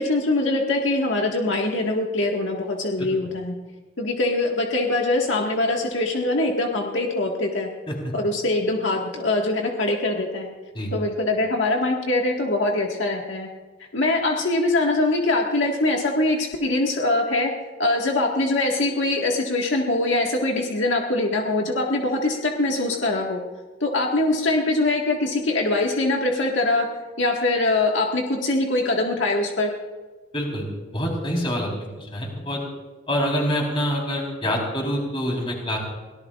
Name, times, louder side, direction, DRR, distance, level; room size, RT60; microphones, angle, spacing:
voice 1, 0.0-3.5 4.0-7.7 8.1-10.5 10.9-13.5 13.9-17.5 17.8-23.4 23.8-26.9 27.2-29.7, left 2 dB, 80° left, 0 dB, 1.8 m, -23 dB
voice 2, 30.3-30.6 30.9-31.7 32.0-32.6 33.1-35.8, equal, 25° left, -1 dB, 4.2 m, -26 dB
24.0 x 18.0 x 2.5 m, 1.3 s
head